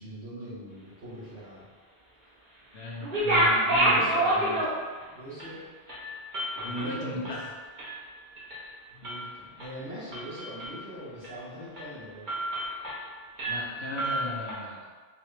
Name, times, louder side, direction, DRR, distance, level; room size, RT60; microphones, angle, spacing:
voice 1, 0.0-1.6 3.7-4.5 5.1-5.6 6.5-7.3 8.9-12.3, equal, 65° right, -13 dB, 1.2 m, -41 dB
voice 2, 2.7-4.1 4.4-4.6 6.6-7.4 13.5-14.8, left 1 dB, 65° left, -4 dB, 1.0 m, -36 dB
sound 1, 3.0-5.0 5.4-5.5 5.9-8.0 8.4-8.7 9.0-9.7 10.1-10.8 11.2-11.4 11.8-11.9 12.3-13.1 13.4-14.5, right 1 dB, 45° right, 1.0 m, -28 dB
4.3 x 2.2 x 3.1 m, 1.5 s
omnidirectional pair, 1.2 m